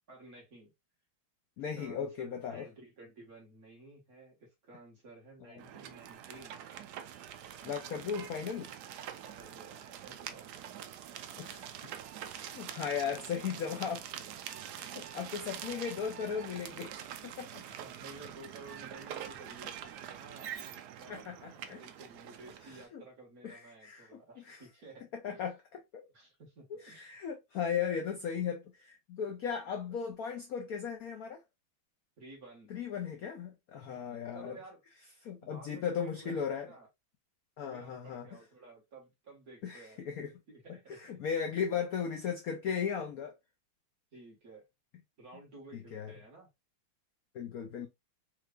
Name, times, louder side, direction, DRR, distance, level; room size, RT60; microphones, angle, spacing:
voice 1, 0.1-0.7 1.6-6.6 9.3-10.7 14.2-14.3 15.5-15.8 17.6-21.3 21.7-25.4 26.1-27.2 32.2-32.8 33.9-34.8 35.4-36.9 37.6-40.0 40.5-41.2 41.7-41.8 44.1-44.7 45.2-46.5, right 3 dB, 45° right, 2.0 m, -53 dB
voice 2, 1.6-2.7 5.4-5.6 7.6-8.7 11.4-11.7 12.3-14.1 14.8-17.0 17.2-17.6 21.1-21.8 22.7-23.0 23.4-24.6 25.2-25.6 25.9-26.1 26.7-31.4 32.7-34.6 35.2-36.7 37.6-38.4 39.6-40.3 40.7-43.4 45.7-46.1 47.3-47.9, left 7 dB, 85° left, 0.8 m, -37 dB
sound 1, 5.6-22.8, right 10 dB, 80° right, 0.9 m, -45 dB
4.6 x 3.3 x 2.4 m
omnidirectional pair, 2.3 m